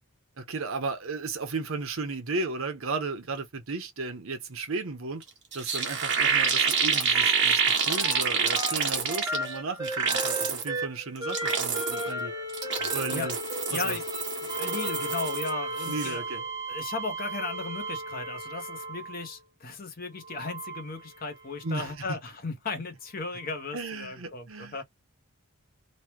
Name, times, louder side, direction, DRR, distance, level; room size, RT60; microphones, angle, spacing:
voice 1, 0.4-5.2 5.5-12.3 12.9-13.3 13.7-14.0 15.9-16.4 21.6-21.9 23.7-24.8, right 3 dB, 70° right, 0.9 m, -34 dB
sound 1, 5.2-5.3 5.5-9.5 9.8-10.7 11.2-12.1 12.5-15.5 15.8-16.1, right 6 dB, 55° right, 1.2 m, -27 dB
sound 2, 7.1-8.2 8.5-19.3 20.2-21.7 23.5-23.6, right 1 dB, 15° right, 0.9 m, -35 dB
voice 2, 12.8-13.3 13.7-14.1 14.4-16.2 16.7-24.8, left 3 dB, 45° left, 0.8 m, -36 dB
3.1 x 2.2 x 3.0 m
head